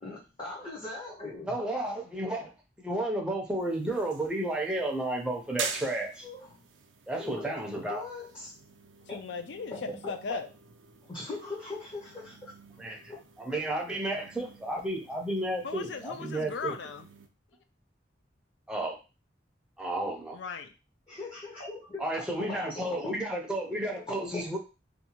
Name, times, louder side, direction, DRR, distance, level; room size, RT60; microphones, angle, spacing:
voice 1, 0.0-1.6 6.2-6.7 7.1-7.5 7.9-8.5 9.1-9.2 9.7-10.4 11.0-13.2 21.1-23.0 23.9-24.5, left 2 dB, 30° left, -5 dB, 0.7 m, -41 dB
voice 2, 1.4-2.5 2.8-6.3 7.1-8.0 12.8-13.0 13.4-16.7 18.7-19.0 19.8-20.4 22.0-24.6, right 1 dB, 5° right, 0 dB, 0.5 m, -32 dB
sound 1, 3.6-17.3, right 6 dB, 85° right, 0.4 m, -46 dB
voice 3, 9.1-9.8 10.1-10.5 15.6-17.1 20.3-20.7, left 5 dB, 70° left, 7 dB, 0.4 m, -37 dB
2.7 x 2.2 x 2.8 m, 0.30 s
head